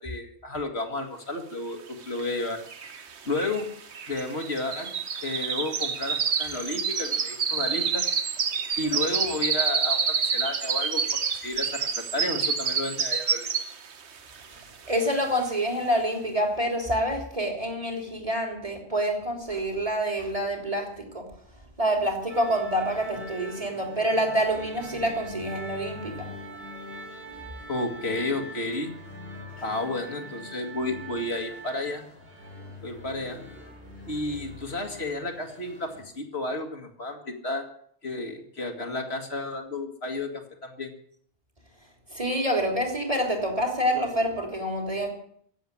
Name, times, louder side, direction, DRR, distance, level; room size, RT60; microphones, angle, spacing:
voice 1, 0.0-1.8 2.1-2.6 3.3-3.7 4.1-4.9 5.2-8.0 8.8-11.0 11.4-13.5 27.7-29.0 29.6-32.0 32.8-33.4 34.1-37.6 38.0-40.9, left 2 dB, 70° left, 3 dB, 2.3 m, -32 dB
sound 1, 2.2-2.3 2.5-13.9 14.3-14.6 15.1-15.2, right 6 dB, 80° right, 1.4 m, -28 dB
voice 2, 14.9-21.3 21.8-26.9 27.3-27.4 29.5-29.6 42.1-45.1, equal, 30° right, 2 dB, 3.7 m, -27 dB
sound 2, 22.3-36.0, equal, 60° right, 3.8 m, -43 dB
15.5 x 8.0 x 10.0 m, 0.63 s
omnidirectional pair, 1.1 m